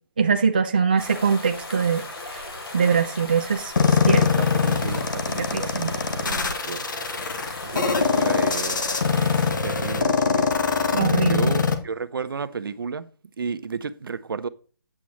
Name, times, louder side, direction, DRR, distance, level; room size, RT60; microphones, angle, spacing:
voice 1, 0.2-2.0 2.3-2.4 2.7-4.3 5.4-5.9 10.9-11.5, right 6 dB, 25° right, 0.4 m, -22 dB
sound 1, 1.0-9.5, left 2 dB, 80° left, 3.2 m, -37 dB
sound 2, 3.8-11.8, left 5 dB, 55° left, 1.1 m, -22 dB
voice 2, 4.0-6.9 7.6-10.5 10.8-10.9 11.1-13.1 13.4-14.5, right 5 dB, 65° right, 0.6 m, -33 dB
8.5 x 7.5 x 3.1 m
hypercardioid pair, 180°, 13 cm